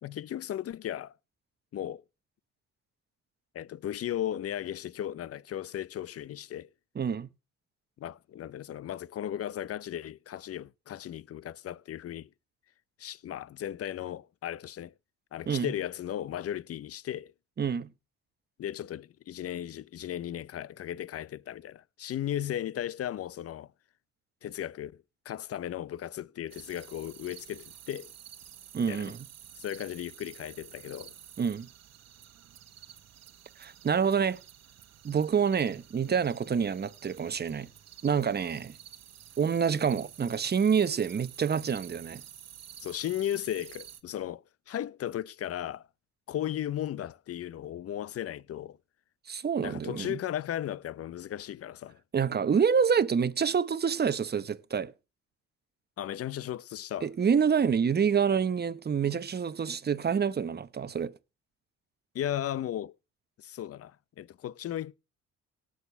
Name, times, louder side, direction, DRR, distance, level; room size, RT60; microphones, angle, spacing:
voice 1, 0.0-1.1 1.7-2.0 3.5-6.7 8.0-12.3 13.0-14.9 15.3-17.3 18.6-23.7 24.4-28.1 28.9-29.1 29.6-31.1 42.8-45.9 46.3-48.8 49.6-52.0 56.0-57.1 62.1-63.0 63.4-64.9, left 11 dB, 50° left, 0.6 m, -36 dB
voice 2, 7.0-7.3 15.5-15.7 17.6-17.9 28.7-29.2 31.4-31.7 33.6-34.4 35.0-37.7 38.0-38.8 39.4-42.2 49.3-50.2 52.1-54.9 57.0-61.1, right 7 dB, 35° right, 0.9 m, -27 dB
sound 1, 26.5-44.0, right 10 dB, 60° right, 1.2 m, -51 dB
18.0 x 6.6 x 6.6 m
cardioid pair, 90°, 30 cm